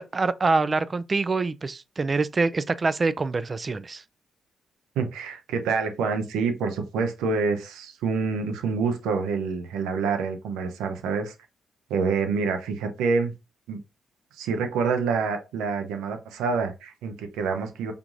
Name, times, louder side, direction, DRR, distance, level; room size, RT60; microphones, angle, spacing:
voice 1, 0.0-4.0, right 3 dB, 40° right, 0.3 m, -25 dB
voice 2, 5.0-11.3 11.9-13.3 13.7-13.8 14.4-17.9, right 5 dB, 90° right, 0.6 m, -27 dB
5.0 x 3.1 x 2.5 m
supercardioid pair, 60°, 0 cm